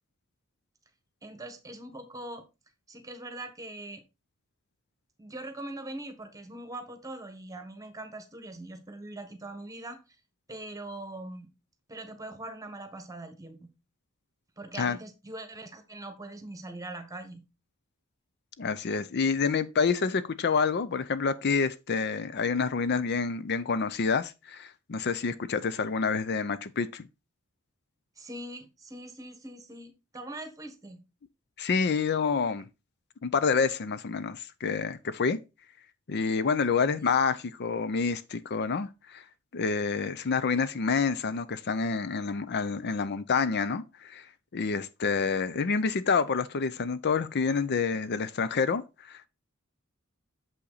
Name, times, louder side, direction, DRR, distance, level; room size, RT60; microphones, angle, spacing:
voice 1, 1.2-2.5 2.9-4.0 5.2-10.0 10.5-11.5 11.9-13.7 14.6-17.4 28.2-31.1, right 2 dB, 15° right, 1.3 m, -42 dB
voice 2, 18.6-27.1 31.6-32.7 33.2-35.4 36.1-39.2 39.5-44.3 44.5-49.3, left 5 dB, 50° left, 0.5 m, -28 dB
7.1 x 5.7 x 4.0 m
head